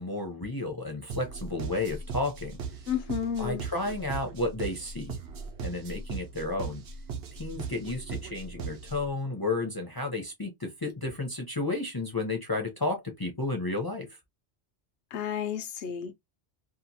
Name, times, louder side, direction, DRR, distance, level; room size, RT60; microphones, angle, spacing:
voice 1, 0.0-2.6 3.4-5.2 5.6-6.8 7.3-14.2, left 2 dB, 30° left, 0.4 m, -32 dB
sound 1, 1.1-9.1, right 5 dB, 70° right, 0.9 m, -39 dB
voice 2, 2.9-3.6 15.1-16.1, left 8 dB, 85° left, 0.9 m, -31 dB
2.8 x 2.3 x 2.7 m
omnidirectional pair, 1.1 m